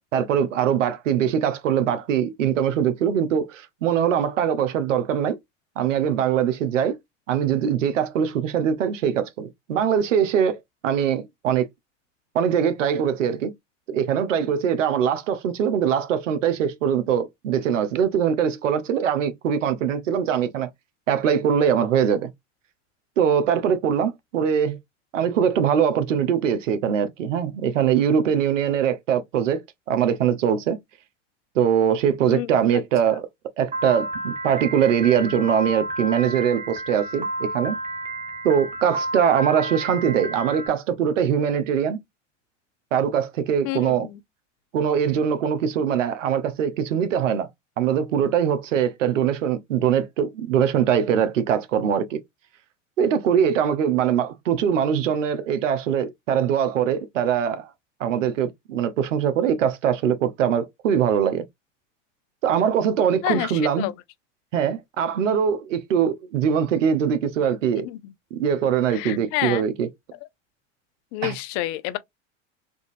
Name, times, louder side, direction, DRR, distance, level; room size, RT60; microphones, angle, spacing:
voice 1, 0.1-5.4 5.8-7.0 7.3-11.7 12.3-13.5 13.9-20.7 21.1-22.3 23.2-24.8 25.1-29.6 29.9-30.8 31.5-33.3 33.6-37.8 38.4-42.0 42.9-44.1 44.7-47.5 47.8-52.2 53.0-57.7 58.0-61.5 62.4-63.9 64.5-67.9 68.3-69.9 71.2-71.3, right 8 dB, 80° right, 0.8 m, -22 dB
Piano, 33.7-40.7, right 2 dB, 20° right, 0.9 m, -31 dB
voice 2, 43.6-44.2 63.2-63.9 67.8-68.0 68.9-69.6 71.1-72.0, left 15 dB, 50° left, 0.5 m, -28 dB
3.7 x 2.5 x 2.5 m
hypercardioid pair, 90°, 37 cm